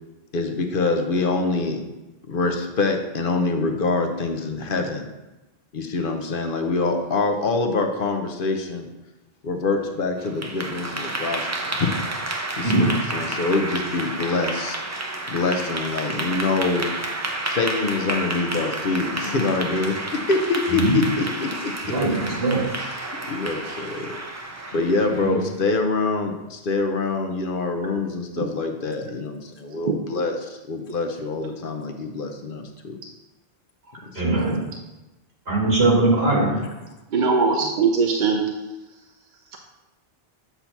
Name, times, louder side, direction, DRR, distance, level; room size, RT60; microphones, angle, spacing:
voice 1, 0.3-1.8 2.3-5.1 5.7-8.9 9.4-11.9 12.6-14.8 15.3-16.9 17.4-21.7 23.3-24.1 24.7-32.9 34.1-34.2 36.3-36.7, left 3 dB, 60° left, 4 dB, 0.8 m, -25 dB
Clapping / Applause, 10.2-25.5, right 2 dB, 25° right, 0.4 m, -30 dB
voice 2, 20.7-21.0 21.8-22.7 25.2-25.4 33.9-34.5 35.5-36.5, right 2 dB, 80° right, -4 dB, 2.1 m, -21 dB
voice 3, 29.8-30.2 37.1-38.5, right 4 dB, 55° right, 2 dB, 0.7 m, -21 dB
8.2 x 2.8 x 5.7 m, 1.1 s
omnidirectional pair, 1.0 m